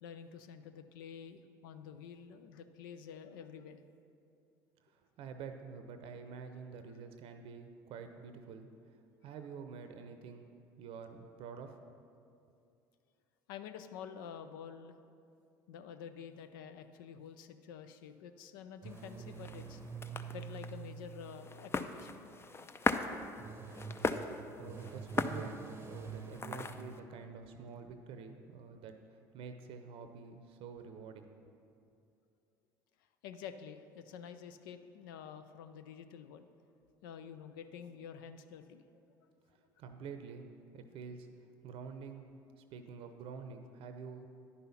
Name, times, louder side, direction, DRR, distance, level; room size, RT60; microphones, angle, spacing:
voice 1, 0.0-3.8 13.5-15.0 15.7-19.8 20.3-22.3 33.2-36.5 37.0-39.0, left 7 dB, 75° left, 10 dB, 0.5 m, -49 dB
voice 2, 4.9-8.7 9.2-10.5 10.8-11.8 24.6-31.4 39.8-40.5 40.7-41.3 41.6-44.3, right 5 dB, 55° right, 7 dB, 0.6 m, -48 dB
sound 1, 18.8-22.2 23.1-27.9, right 5 dB, 20° right, 0.8 m, -47 dB
sound 2, 18.9-27.0, left 3 dB, 20° left, 0.5 m, -39 dB
10.0 x 5.6 x 5.7 m, 2.5 s
hypercardioid pair, 65°, 11 cm